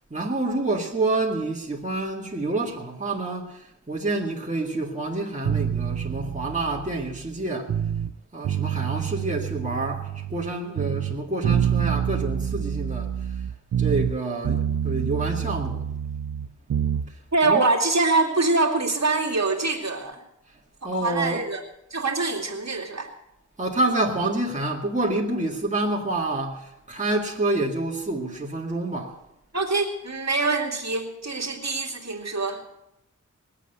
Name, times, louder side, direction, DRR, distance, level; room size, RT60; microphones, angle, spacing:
voice 1, 0.1-7.8 8.3-13.1 13.8-15.8 17.4-17.6 20.8-21.4 23.6-29.2, right 2 dB, 25° right, 2.2 m, -28 dB
sound 1, 5.4-8.1 8.4-10.5 10.8-14.2 14.4-17.1, right 9 dB, 85° right, 0.6 m, -27 dB
voice 2, 17.3-20.2 20.8-21.6 21.9-23.1 29.5-32.6, right 3 dB, 55° right, 2.7 m, -24 dB
20.5 x 8.4 x 8.0 m
wide cardioid pair, 80°, 32 cm